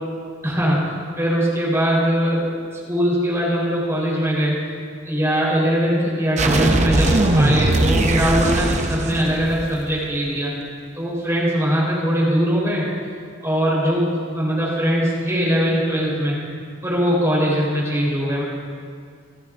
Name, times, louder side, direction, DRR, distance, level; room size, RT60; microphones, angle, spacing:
voice 1, 0.4-2.5 2.9-4.6 5.0-10.5 11.0-12.9 13.4-16.4 16.8-18.4, equal, 15° right, -6 dB, 3.9 m, -21 dB
sound 1, 6.4-10.1, right 2 dB, 35° right, 0.7 m, -20 dB
28.0 x 9.4 x 2.5 m, 2.1 s
head